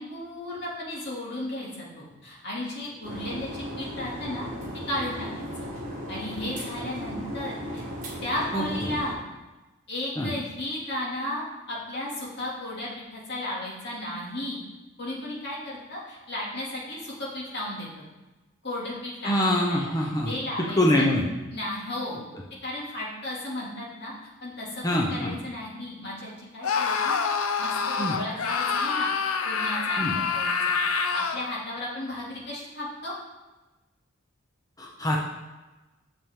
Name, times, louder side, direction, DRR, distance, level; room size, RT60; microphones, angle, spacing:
voice 1, 0.0-4.4 4.9-5.7 6.1-7.8 8.2-9.2 9.9-14.6 15.0-18.1 18.6-19.4 19.7-21.1 21.5-22.2 22.6-24.1 24.4-27.2 27.6-27.7 28.0-29.1 29.4-33.1, left 1 dB, 50° left, -5 dB, 2.4 m, -34 dB
sound 1, 3.0-9.1, equal, 35° right, 1.8 m, -36 dB
voice 2, 8.5-8.9 10.2-10.3 19.2-20.3 20.8-21.3 24.8-25.4 28.0-28.2 30.0-30.1 34.8-35.3, left 1 dB, 15° left, -2 dB, 0.7 m, -24 dB
Screaming, 26.6-31.5, left 5 dB, 80° left, 0.6 m, -26 dB
8.5 x 6.9 x 3.7 m, 1.1 s
head